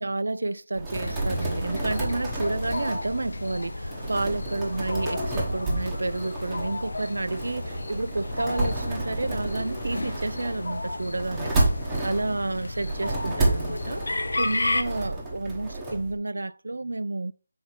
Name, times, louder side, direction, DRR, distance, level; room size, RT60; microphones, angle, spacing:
voice 1, 0.0-11.5 12.0-17.3, right 2 dB, 85° right, 0.5 m, -30 dB
sound 1, 0.8-16.1, right 2 dB, 5° right, 1.2 m, -31 dB
sound 2, 1.0-14.8, left 2 dB, 80° left, 1.0 m, -33 dB
5.8 x 4.2 x 6.1 m
figure-of-eight pair, 175°, 0 cm